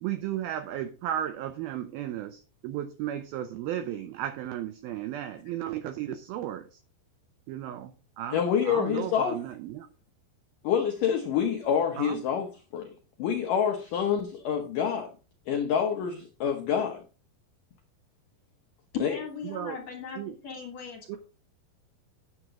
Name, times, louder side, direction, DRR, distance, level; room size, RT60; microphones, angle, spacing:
voice 1, 0.0-6.8 7.5-8.4 8.7-9.9 12.0-12.2 19.4-19.8 20.2-20.4 21.1-21.2, right 11 dB, 85° right, 2.1 m, -34 dB
voice 2, 8.3-9.4 10.6-12.9 13.2-15.1 15.5-17.0 19.0-19.2, left 8 dB, 75° left, 1.9 m, -27 dB
voice 3, 18.9-21.2, left 6 dB, 55° left, 2.1 m, -37 dB
9.8 x 7.9 x 3.6 m
omnidirectional pair, 5.1 m